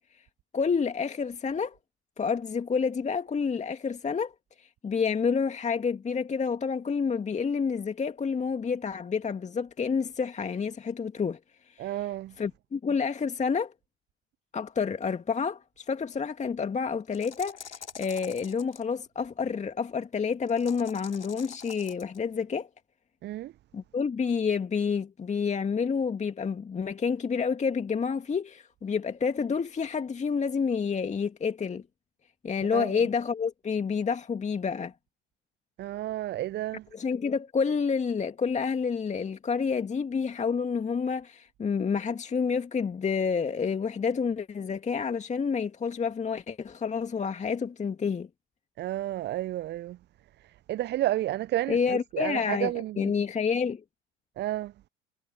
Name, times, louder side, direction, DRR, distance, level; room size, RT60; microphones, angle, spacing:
voice 1, 0.5-1.8 2.2-4.3 4.6-11.4 11.7-11.9 12.4-13.7 14.5-22.7 23.7-31.8 32.4-34.9 36.9-48.3 51.7-53.8, left 5 dB, 20° left, 2.1 m, -29 dB
voice 2, 11.8-12.3 23.2-23.5 32.7-33.0 35.8-36.8 48.8-50.0 50.7-53.1 54.4-54.7, right 14 dB, 30° right, 0.7 m, -31 dB
sound 1, 17.0-18.8 20.5-22.2, left 7 dB, 80° left, 5.2 m, -45 dB
figure-of-eight pair, 70°, 34 cm